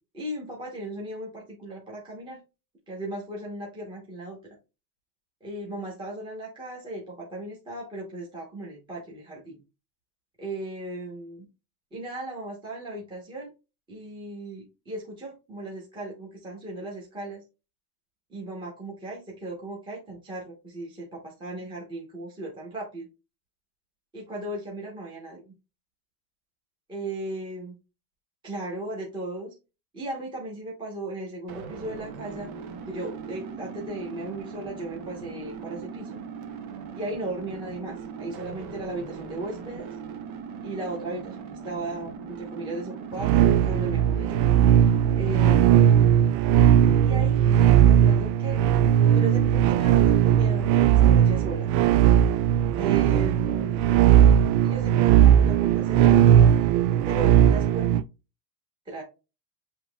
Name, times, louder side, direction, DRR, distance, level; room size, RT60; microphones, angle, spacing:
voice 1, 0.1-2.4 2.9-4.4 5.4-9.6 10.4-11.5 11.9-13.5 13.9-17.4 18.3-23.1 24.1-25.5 26.9-27.7 28.4-29.5 29.9-32.5 32.8-36.2 36.9-39.9 40.6-44.4 45.1-45.9 47.0-47.4 47.8-48.6 49.1-51.7 52.7-53.8 54.6-56.3 57.0-57.9 58.9-59.0, right 2 dB, 10° right, -3 dB, 1.0 m, -36 dB
sound 1, 31.5-45.2, right 6 dB, 60° right, 1.0 m, -39 dB
sound 2, 43.2-58.0, right 10 dB, 85° right, 0.6 m, -18 dB
7.6 x 3.0 x 2.3 m, 0.29 s
cardioid pair, 165°, 50 cm